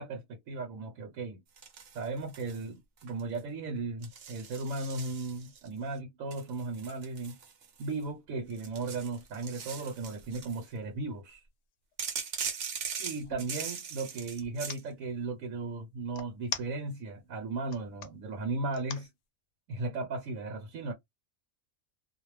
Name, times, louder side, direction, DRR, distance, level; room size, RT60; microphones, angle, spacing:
voice 1, 0.0-1.4 1.9-7.4 7.8-11.4 13.0-19.1 19.7-20.9, right 3 dB, 80° right, 1.1 m, -36 dB
sound 1, 1.6-2.6 3.0-3.4 4.0-5.7 6.3-8.0 8.5-10.7 12.0-14.8, right 6 dB, 55° right, 0.8 m, -40 dB
sound 2, 11.3-11.5 11.9-13.5 14.4-14.8 16.1-17.1 17.6-18.1 18.7-19.1, left 7 dB, 65° left, 0.8 m, -41 dB
2.4 x 2.1 x 3.1 m
omnidirectional pair, 1.4 m